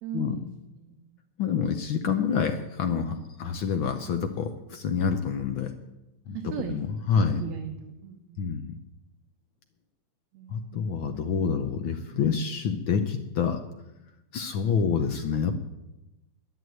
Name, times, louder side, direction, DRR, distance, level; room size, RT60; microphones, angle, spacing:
voice 1, 0.0-1.1 6.3-8.8 10.3-11.1, right 7 dB, 75° right, 4 dB, 2.3 m, -39 dB
voice 2, 1.4-5.7 6.3-6.4 6.7-7.4 8.4-8.7 10.5-13.6 14.3-15.6, left 6 dB, 75° left, 6 dB, 1.2 m, -27 dB
10.5 x 9.8 x 9.1 m, 0.95 s
omnidirectional pair, 3.3 m